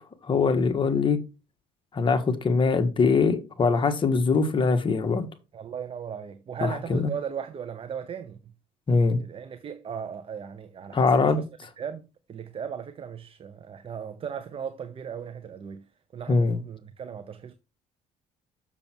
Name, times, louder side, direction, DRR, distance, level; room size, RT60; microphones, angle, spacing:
voice 1, 0.2-1.2 1.9-5.3 6.6-7.1 8.9-9.2 10.9-11.4 16.3-16.6, left 4 dB, 35° left, 1.6 m, -22 dB
voice 2, 5.5-8.4 9.2-11.4 11.8-15.8 16.1-17.5, right 7 dB, 40° right, 0.9 m, -37 dB
7.0 x 6.9 x 4.5 m
cardioid pair, 90°, 14 cm